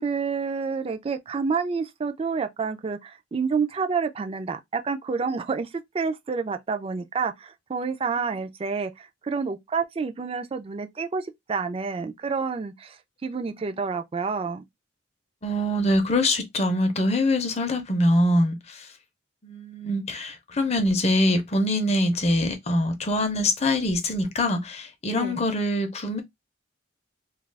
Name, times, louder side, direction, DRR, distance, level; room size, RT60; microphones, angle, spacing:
voice 1, 0.0-5.7 5.9-14.6 25.1-25.4, right 5 dB, 30° right, 0.3 m, -29 dB
voice 2, 15.4-18.9 19.4-26.2, left 1 dB, 35° left, 0.6 m, -24 dB
2.3 x 2.3 x 3.2 m
head